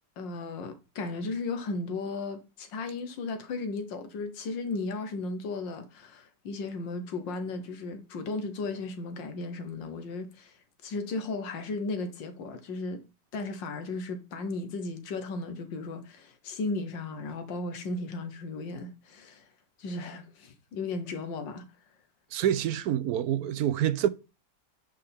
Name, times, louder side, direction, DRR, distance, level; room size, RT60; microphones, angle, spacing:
voice 1, 0.2-10.5 10.8-13.0 13.3-19.5 19.8-21.6, left 3 dB, 90° left, 1.8 m, -35 dB
voice 2, 22.3-24.1, right 10 dB, 70° right, 0.9 m, -27 dB
10.0 x 4.9 x 3.5 m
omnidirectional pair, 1.9 m